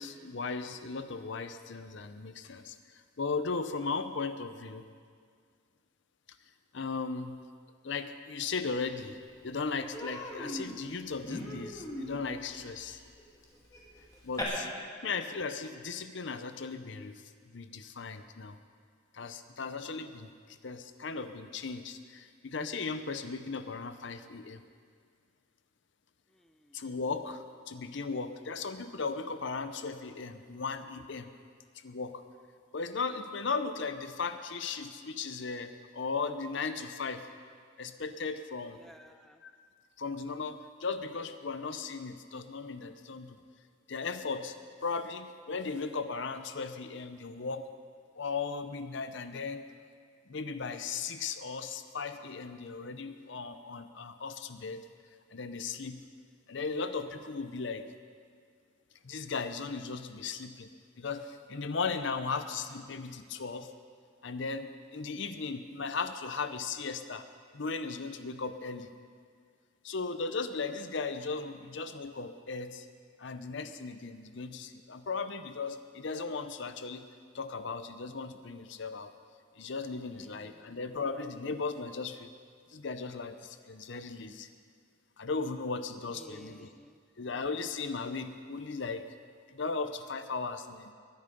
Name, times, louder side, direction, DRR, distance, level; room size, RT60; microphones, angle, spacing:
voice 1, 0.0-4.9 6.7-7.4 7.8-9.2 9.4-13.0 14.2-14.7 15.0-17.2 17.5-18.6 19.1-24.6 26.7-31.3 31.8-32.2 32.7-37.3 37.8-38.8 39.4-39.5 40.0-43.4 43.9-44.5 44.8-47.7 48.2-49.6 50.3-54.8 55.3-56.0 56.5-57.8 59.0-60.7 61.0-63.7 64.2-67.3 67.5-68.9 69.8-72.9 73.2-77.0 77.3-79.1 79.6-82.3 82.7-84.5 85.2-86.7 87.2-89.0 89.5-90.9, left 4 dB, 55° left, 9 dB, 0.6 m, -37 dB
Human voice, 8.9-9.0 9.3-9.5 9.9-14.4, left 1 dB, 15° left, 2.0 m, -41 dB
voice 2, 26.3-26.8 38.7-39.4 80.1-80.7 86.1-87.0, equal, ahead, 8 dB, 0.4 m, -55 dB
20.5 x 10.5 x 5.3 m, 2.1 s
head